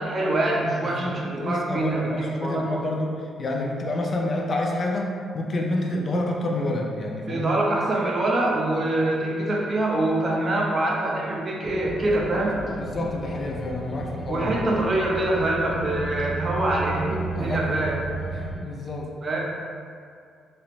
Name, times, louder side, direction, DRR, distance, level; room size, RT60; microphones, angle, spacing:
voice 1, 0.0-2.9 7.3-12.6 14.3-18.2 19.2-19.4, right 2 dB, 40° right, -2 dB, 0.5 m, -25 dB
voice 2, 0.8-7.5 12.3-14.6 17.3-17.9 18.3-19.1, left 1 dB, 40° left, 0 dB, 0.3 m, -28 dB
sound 1, 11.6-18.5, right 2 dB, 75° left, 0.9 m, -34 dB
3.1 x 2.0 x 2.4 m, 2.3 s
cardioid pair, 90°, 0 cm